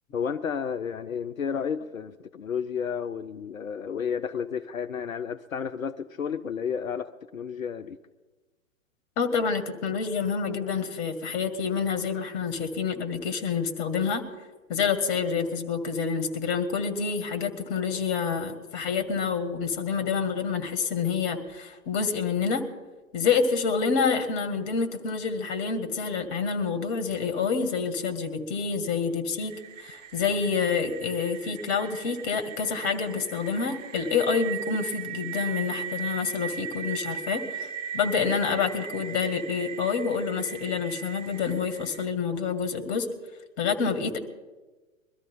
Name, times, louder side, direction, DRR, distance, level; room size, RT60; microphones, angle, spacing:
voice 1, 0.1-8.0, left 7 dB, 85° left, 9 dB, 0.7 m, -32 dB
voice 2, 9.2-14.2 14.7-22.6 23.1-29.5 29.8-37.7 37.9-43.1 43.6-44.2, left 5 dB, 40° left, 8 dB, 2.3 m, -28 dB
sound 1, 29.4-42.1, right 8 dB, 70° right, 0.8 m, -38 dB
23.0 x 13.5 x 3.8 m, 1.2 s
figure-of-eight pair, 110°, 40 cm